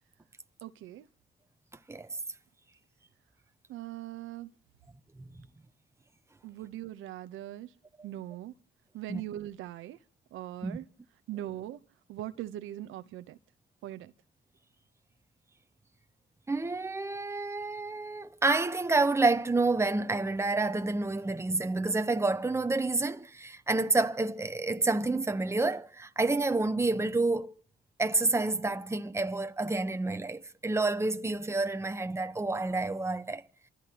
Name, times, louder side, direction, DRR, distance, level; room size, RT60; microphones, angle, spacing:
voice 1, 0.6-1.1 3.7-4.5 6.4-7.7 8.0-8.5 8.9-10.0 10.3-10.8 11.3-11.8 12.1-13.4 13.8-14.1, right 13 dB, 90° right, 1.0 m, -40 dB
voice 2, 16.5-27.5 28.0-33.4, right 3 dB, 15° right, 1.1 m, -29 dB
28.0 x 15.0 x 3.0 m
cardioid pair, 90°, 20 cm